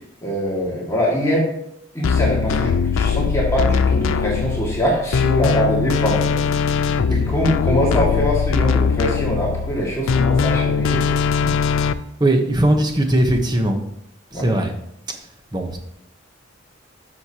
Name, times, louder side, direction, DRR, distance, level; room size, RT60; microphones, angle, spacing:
voice 1, 0.2-1.5 1.9-11.1 14.3-14.6, equal, 15° left, -5 dB, 2.0 m, -23 dB
sound 1, 2.0-11.9, left 5 dB, 80° left, 0.4 m, -20 dB
voice 2, 12.2-13.8 14.3-14.7 15.5-15.8, right 1 dB, 20° right, 3 dB, 0.9 m, -18 dB
10.5 x 6.4 x 2.9 m, 0.77 s
head